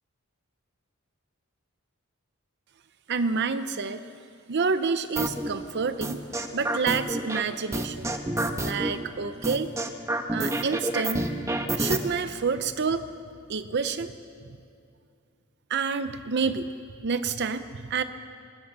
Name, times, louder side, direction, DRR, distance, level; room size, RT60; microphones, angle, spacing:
voice 1, 3.1-4.0 4.5-6.2 6.5-8.1 8.6-9.7 10.3-11.3 11.8-13.0 13.5-14.1 15.7-16.7 17.0-18.0, right 5 dB, 55° right, 11 dB, 0.7 m, -28 dB
sound 1, 5.2-5.5 6.0-7.4 7.7-8.9 9.4-12.0, right 1 dB, 15° right, 1.2 m, -28 dB
23.5 x 21.0 x 6.7 m, 2.4 s
head